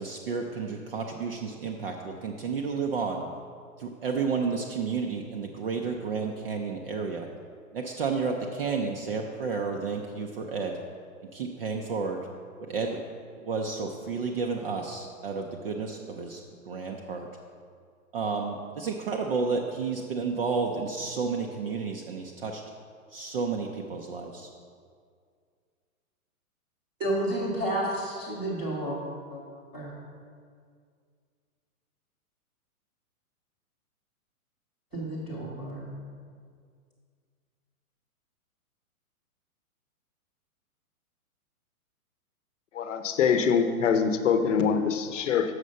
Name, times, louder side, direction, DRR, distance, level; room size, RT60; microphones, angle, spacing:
voice 1, 0.0-3.2 3.8-7.3 7.7-10.8 11.3-12.2 12.7-13.0 13.4-16.4 16.7-17.3 18.1-22.6 23.1-24.5, right 5 dB, 40° right, 1 dB, 0.5 m, -31 dB
voice 2, 27.0-29.0 29.3-29.4 29.7-29.9 34.9-35.9, right 1 dB, 10° right, -9 dB, 0.7 m, -31 dB
voice 3, 42.7-45.5, left 6 dB, 55° left, 8 dB, 0.8 m, -24 dB
6.7 x 6.4 x 5.3 m, 2.1 s
hypercardioid pair, 165°, 44 cm